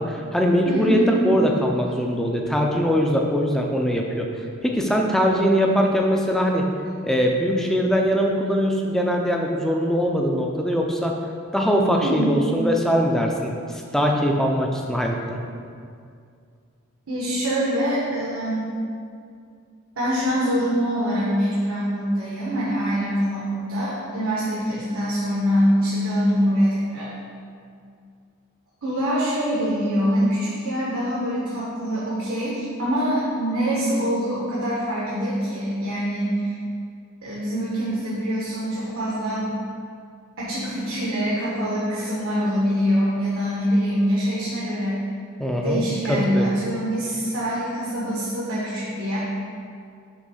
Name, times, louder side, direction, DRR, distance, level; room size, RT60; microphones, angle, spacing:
voice 1, 0.0-6.7 7.0-11.2 11.5-15.4 45.4-45.8 46.1-46.5, equal, ahead, 1 dB, 0.4 m, -22 dB
voice 2, 0.6-1.1 12.0-12.3 17.1-18.7 20.0-27.1 28.8-36.5 37.2-39.5 40.4-45.0 45.6-49.2, equal, 85° right, -7 dB, 1.2 m, -24 dB
6.1 x 3.2 x 5.6 m, 2.3 s
head